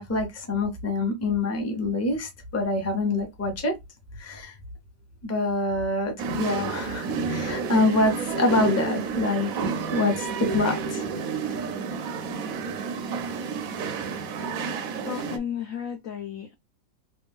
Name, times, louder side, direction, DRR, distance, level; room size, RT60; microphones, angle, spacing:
voice 1, 0.0-3.7 4.2-4.6 5.2-11.0, left 2 dB, 15° left, 0.6 m, -26 dB
sound 1, 6.2-15.4, right 5 dB, 70° right, 0.8 m, -30 dB
voice 2, 15.0-16.5, left 8 dB, 70° left, 0.8 m, -33 dB
3.3 x 2.6 x 3.5 m
omnidirectional pair, 2.0 m